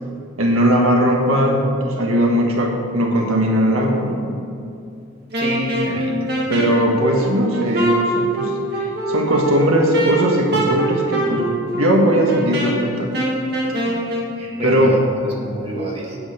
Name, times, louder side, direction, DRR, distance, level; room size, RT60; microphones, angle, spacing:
voice 1, 0.4-4.3 6.5-13.1 14.6-14.9, equal, 85° right, 0 dB, 1.5 m, -18 dB
Wind instrument woodwind instrument, 5.3-14.3, right 1 dB, 50° right, 2.1 m, -23 dB
voice 2, 5.4-6.5 13.9-14.0 14.4-16.2, right 1 dB, 25° right, -3 dB, 1.8 m, -28 dB
8.8 x 8.6 x 6.6 m, 2.6 s
head